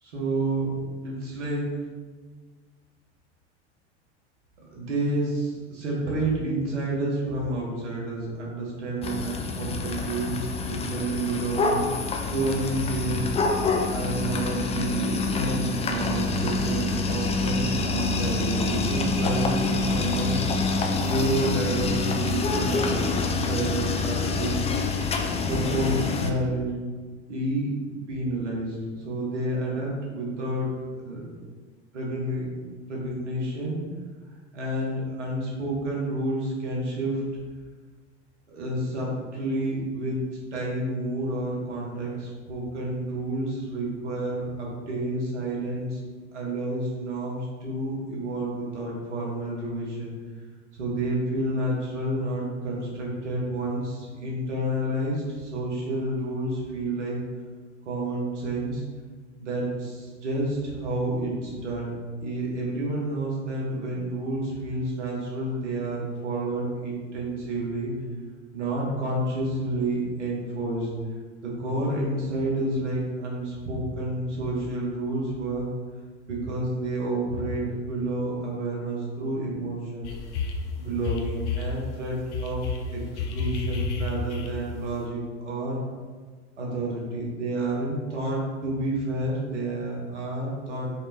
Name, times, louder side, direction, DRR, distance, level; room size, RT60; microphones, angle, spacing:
voice 1, 0.0-0.8 1.0-1.7 4.7-11.9 12.2-13.3 13.9-20.4 21.0-24.7 25.5-26.8 27.3-27.8 28.1-30.7 31.0-31.3 31.9-32.5 32.9-33.9 34.5-37.3 38.5-40.2 40.5-46.0 46.3-50.1 50.7-57.2 57.8-58.8 59.4-62.0 62.2-67.9 68.5-70.9 71.4-75.7 76.3-80.1 80.8-83.0 83.3-85.8 86.6-90.9, right 1 dB, 90° right, -4 dB, 1.5 m, -29 dB
sound 1, 9.0-26.3, left 3 dB, 20° left, 0.4 m, -26 dB
sound 2, 80.0-80.7 81.0-81.7 82.3-84.8, left 4 dB, 80° left, 0.7 m, -30 dB
4.9 x 3.3 x 2.9 m, 1.5 s
hypercardioid pair, 90°, 34 cm